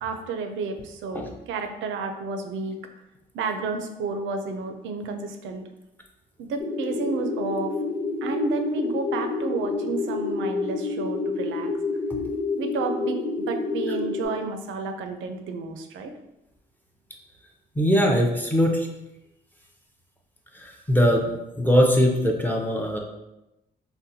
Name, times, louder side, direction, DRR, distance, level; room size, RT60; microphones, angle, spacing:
voice 1, 0.0-2.8 3.3-5.7 6.4-7.7 8.2-11.7 12.6-16.1, right 4 dB, 75° right, 6 dB, 0.4 m, -31 dB
sound 1, 6.6-14.3, left 3 dB, 45° left, 1.0 m, -28 dB
voice 2, 17.8-18.9 20.6-23.0, equal, 10° left, 1 dB, 0.5 m, -21 dB
3.8 x 2.1 x 2.7 m, 0.93 s
cardioid pair, 90°, 20 cm